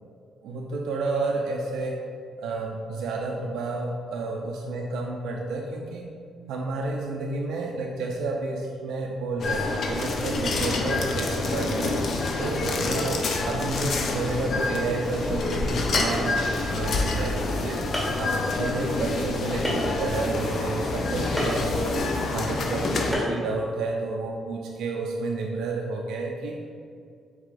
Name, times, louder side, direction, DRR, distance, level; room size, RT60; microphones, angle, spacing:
voice 1, 0.4-2.0 2.4-6.1 6.5-12.0 12.4-17.8 18.2-22.0 22.3-26.6, right 3 dB, 90° right, -1 dB, 0.4 m, -30 dB
sound 1, 9.4-23.1, left 3 dB, 60° left, 0.4 m, -27 dB
sound 2, 15.9-16.3 17.1-17.2 17.9-18.2 19.6-20.0 21.4-21.6 23.1-23.4, equal, 10° left, 1.2 m, -28 dB
4.7 x 3.7 x 2.5 m, 2.3 s
cardioid pair, 100°, 0 cm